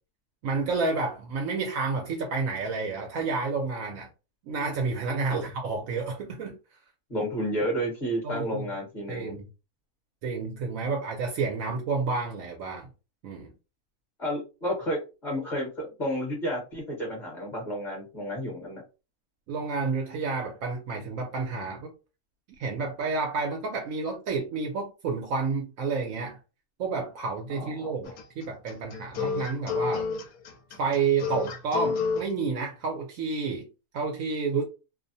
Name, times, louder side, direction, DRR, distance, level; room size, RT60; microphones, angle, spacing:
voice 1, 0.4-4.1 4.4-6.5 8.2-8.7 9.1-9.5 10.2-12.9 13.2-13.5 19.5-21.9 22.6-26.4 26.8-30.1 30.8-33.7 33.9-34.6, right 4 dB, 70° right, 0.9 m, -30 dB
voice 2, 7.1-9.4 14.2-18.8 27.5-27.7, equal, 35° left, 1.0 m, -31 dB
sound 1, 28.0-32.3, left 5 dB, 80° left, 1.1 m, -30 dB
2.7 x 2.0 x 2.6 m
omnidirectional pair, 1.5 m